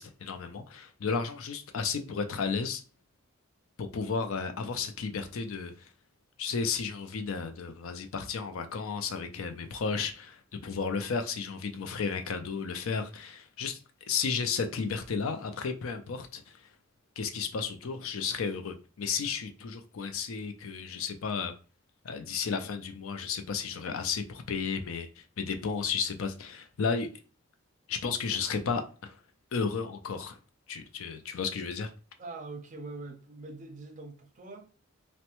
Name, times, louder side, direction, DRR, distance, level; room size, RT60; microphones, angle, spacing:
voice 1, 0.0-2.8 3.8-5.9 6.4-13.8 14.1-16.4 17.2-21.5 22.0-27.1 27.9-29.2 29.5-30.4 30.7-31.9, left 5 dB, 80° left, 0.5 m, -33 dB
voice 2, 32.2-34.7, right 3 dB, 35° right, 0.5 m, -43 dB
3.2 x 2.1 x 2.9 m
head